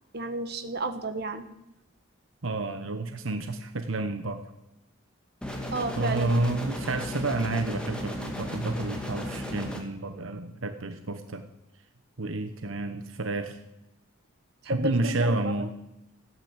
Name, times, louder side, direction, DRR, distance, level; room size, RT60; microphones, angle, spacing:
voice 1, 0.1-1.4 5.7-6.3 14.6-15.7, right 2 dB, 50° right, 8 dB, 1.4 m, -32 dB
voice 2, 2.4-4.4 6.0-11.4 12.2-13.6 14.6-15.7, right 2 dB, 75° right, 7 dB, 1.1 m, -30 dB
sound 1, 5.4-9.8, left 1 dB, 5° left, 2.3 m, -35 dB
15.5 x 9.0 x 8.1 m, 0.90 s
head